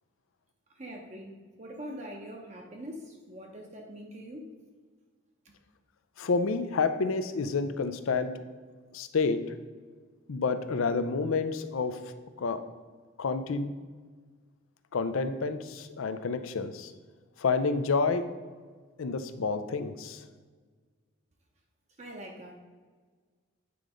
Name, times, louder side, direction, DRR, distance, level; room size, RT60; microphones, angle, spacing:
voice 1, 0.7-4.5 22.0-22.6, equal, 35° right, 1 dB, 0.7 m, -43 dB
voice 2, 6.2-8.4 8.9-9.4 10.3-12.0 12.4-12.6 13.2-13.7 14.9-16.9 17.4-18.2 19.0-20.2, left 4 dB, 80° left, 10 dB, 0.5 m, -29 dB
8.5 x 3.8 x 4.9 m, 1.5 s
head